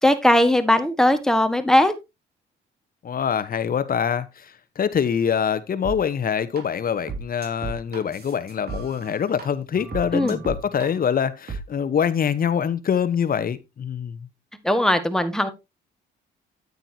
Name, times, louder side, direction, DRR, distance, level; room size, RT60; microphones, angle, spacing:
voice 1, 0.0-1.9 10.1-10.4 14.6-15.5, left 1 dB, 5° left, 1.6 m, -19 dB
voice 2, 3.0-14.3, left 7 dB, 45° left, 1.1 m, -24 dB
sound 1, 5.8-6.0 6.6-6.7 7.1-9.4 9.7-10.9 11.5-11.6, right 4 dB, 50° right, 3.0 m, -34 dB
9.6 x 9.0 x 2.8 m
cardioid pair, 90°, 20 cm